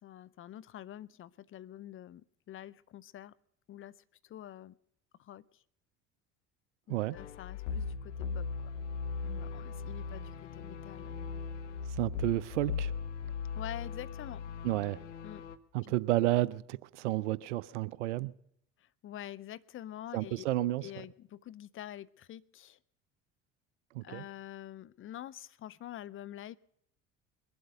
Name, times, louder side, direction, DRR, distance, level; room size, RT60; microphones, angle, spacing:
voice 1, 0.0-3.3 3.7-4.0 4.2-4.8 5.2-5.6 6.9-8.7 9.2-11.3 13.5-14.4 15.2-15.5 15.8-15.9 18.8-20.5 20.8-22.8 24.0-26.6, left 12 dB, 35° left, 0.5 m, -47 dB
sound 1, 7.1-15.6, left 5 dB, 85° left, 0.7 m, -38 dB
voice 2, 11.9-12.9 14.6-15.0 15.7-18.3 20.1-20.9 23.9-24.2, right 16 dB, 85° right, 0.5 m, -31 dB
21.5 x 7.9 x 6.5 m
hypercardioid pair, 65°, 35 cm